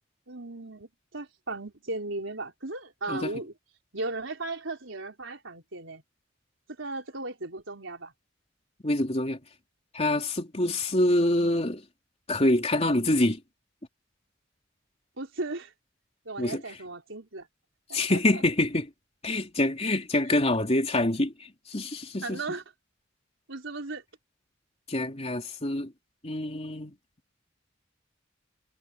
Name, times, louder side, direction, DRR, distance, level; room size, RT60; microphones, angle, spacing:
voice 1, 0.3-3.5 3.9-6.0 6.7-8.1 10.6-10.8 15.2-15.7 16.2-17.5 17.9-18.4 20.3-20.4 22.2-22.6 23.5-24.0, right 2 dB, 80° right, 4.3 m, -36 dB
voice 2, 8.8-9.4 9.9-11.8 12.3-13.4 16.4-16.6 17.9-18.9 19.2-21.3 21.7-22.4 24.9-25.9 26.2-26.9, left 1 dB, 35° left, 3.3 m, -26 dB
head